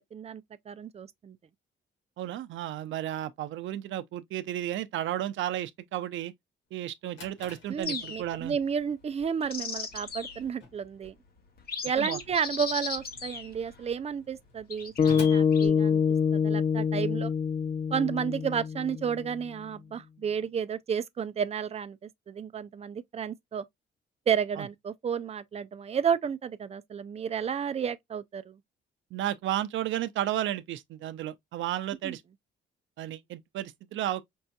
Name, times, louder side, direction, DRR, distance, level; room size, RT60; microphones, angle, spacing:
voice 1, 0.1-1.4 7.7-11.1 11.8-16.0 16.3-17.3 17.9-22.0 22.3-23.6 24.3-28.6 32.0-32.2, right 7 dB, 30° right, 0.5 m, -32 dB
voice 2, 2.2-6.3 6.7-8.6 12.0-12.2 24.6-24.7 29.1-32.2 33.0-34.2, right 12 dB, 75° right, 0.6 m, -33 dB
Drawer open or close, 6.8-16.5, left 3 dB, 80° left, 3.0 m, -52 dB
sound 1, 7.8-8.5 9.2-10.5 11.0-11.1 11.6-13.9 14.7-15.7, left 5 dB, 50° left, 1.1 m, -37 dB
sound 2, 15.0-19.4, left 6 dB, 35° left, 0.4 m, -25 dB
5.4 x 2.6 x 2.2 m
cardioid pair, 90°, 20 cm